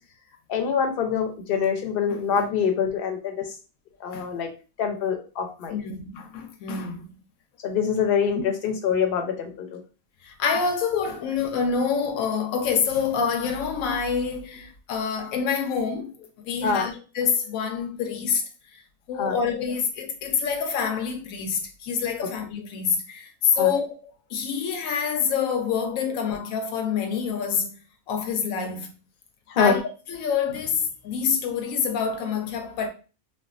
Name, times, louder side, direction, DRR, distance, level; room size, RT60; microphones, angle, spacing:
voice 1, 0.5-3.6 4.0-4.5 4.8-5.8 7.6-9.8 16.6-16.8 19.2-19.7 22.2-22.3 23.5-23.7 29.5-29.7, left 6 dB, 60° left, 0.7 m, -25 dB
voice 2, 5.7-7.2 10.2-18.8 19.1-23.9 24.3-27.7 28.1-29.0 29.6-29.8 30.1-32.9, left 6 dB, 90° left, 1.0 m, -27 dB
3.4 x 2.2 x 2.4 m
omnidirectional pair, 1.4 m